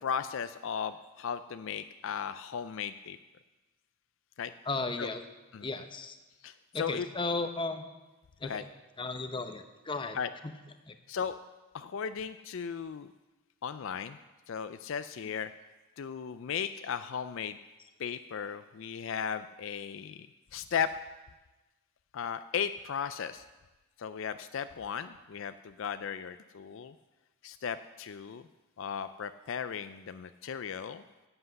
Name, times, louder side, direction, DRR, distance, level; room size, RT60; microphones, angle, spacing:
voice 1, 0.0-3.2 4.4-4.5 5.0-5.1 5.5-5.7 6.4-7.1 8.4-8.6 10.1-10.3 11.1-11.4 11.7-13.1 13.6-14.2 14.5-15.5 16.0-17.6 18.0-20.3 20.5-20.9 22.1-23.4 24.0-26.9 27.4-28.4 28.8-31.0, left 7 dB, 60° left, 11 dB, 0.4 m, -36 dB
voice 2, 4.7-5.2 5.6-6.2 6.7-7.9 8.4-8.7 9.0-10.2 10.4-10.5 10.9-11.0, left 3 dB, 20° left, 8 dB, 0.7 m, -35 dB
11.0 x 7.9 x 7.9 m, 1.2 s
head